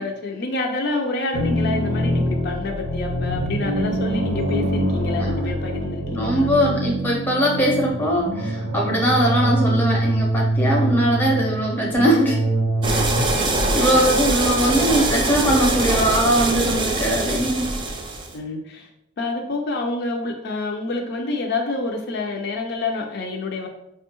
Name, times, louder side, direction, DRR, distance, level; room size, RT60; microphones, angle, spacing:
voice 1, 0.0-6.6 11.8-12.1 12.9-13.1 13.3-14.1 18.3-18.9 19.2-23.7, left 3 dB, 55° left, 1 dB, 0.4 m, -28 dB
sound 1, 1.3-13.2, right 1 dB, 85° right, 0.7 m, -24 dB
voice 2, 6.1-12.4 13.7-17.8, equal, 10° left, -2 dB, 0.7 m, -21 dB
sound 2, 12.8-18.3, right 2 dB, 25° right, 0.3 m, -23 dB
4.7 x 2.2 x 2.9 m, 0.80 s
head